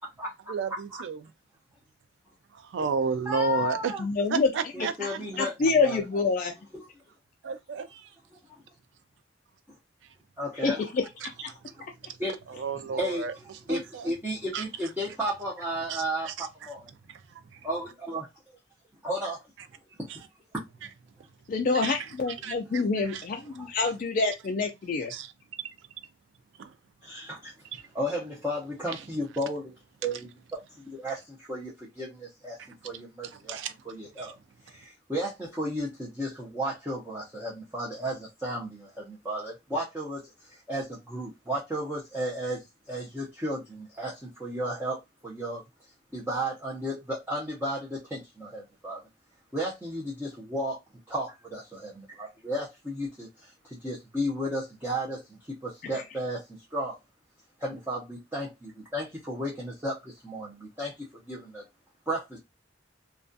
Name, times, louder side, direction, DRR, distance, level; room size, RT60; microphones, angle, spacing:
voice 1, 0.5-1.3 2.5-3.9 4.3-6.0 7.4-8.2 10.0-10.2 11.2-11.3 11.6-11.7 12.0-12.2 12.5-14.1 14.5-14.6 15.9-16.7 17.1-17.7 20.1-20.2 21.2-21.3 21.7-23.3 25.1-25.3 25.6-25.9 26.6-26.8 27.7-27.8 28.9-29.0 32.6-32.7 33.2-33.9 34.2-34.3, right 5 dB, 75° right, 0.3 m, -34 dB
voice 2, 3.3-4.0 4.7-6.0 6.7-6.9 10.4-10.8 11.7-11.8 12.2-12.3 12.9-13.2 13.7-16.3 16.7-16.9 17.6-18.3 19.0-19.4 20.0-20.3 20.5-20.6 23.6-23.7 27.0-27.5 27.9-29.7 30.0-30.3 30.8-32.6 32.8-33.6 33.9-34.3 34.6-45.6 46.1-49.0 49.5-50.8 51.1-56.4 56.7-57.0 57.6-61.6 62.1-62.4, equal, 10° right, 0.6 m, -33 dB
voice 3, 4.0-4.5 5.4-6.5 10.6-10.7 11.4-11.5 21.5-25.1, left 4 dB, 45° left, 0.3 m, -26 dB
2.3 x 2.2 x 2.5 m
head